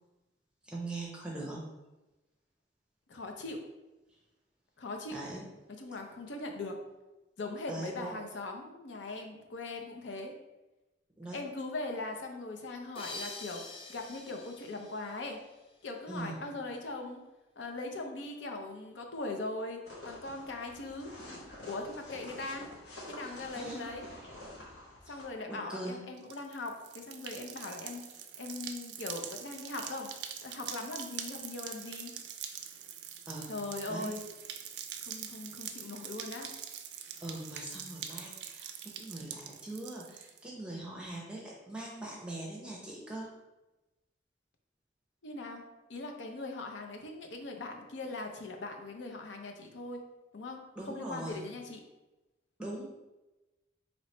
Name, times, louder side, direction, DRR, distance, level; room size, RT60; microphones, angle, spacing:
voice 1, 0.6-1.6 5.1-5.5 7.7-8.2 11.2-11.4 16.1-16.5 23.6-23.9 25.1-25.2 25.5-26.0 33.3-33.6 33.9-34.1 37.2-43.3 50.8-51.4 52.6-52.8, right 2 dB, 5° right, -4 dB, 0.6 m, -41 dB
voice 2, 3.1-3.6 4.8-5.2 5.8-6.8 7.4-10.3 11.3-13.6 13.9-15.4 15.8-17.2 17.6-19.8 20.0-21.1 21.7-22.7 23.1-24.1 25.1-28.0 28.4-30.1 30.4-32.1 33.5-34.2 35.0-36.5 45.2-45.6 45.9-50.0 50.3-51.8, left 2 dB, 80° left, 3 dB, 0.6 m, -40 dB
sound 1, 13.0-16.0, left 2 dB, 30° left, 0.3 m, -46 dB
sound 2, 19.8-25.2, left 1 dB, 65° left, 1.0 m, -48 dB
sound 3, 26.2-40.4, right 9 dB, 65° right, 0.4 m, -44 dB
3.1 x 2.9 x 4.2 m, 1.1 s
head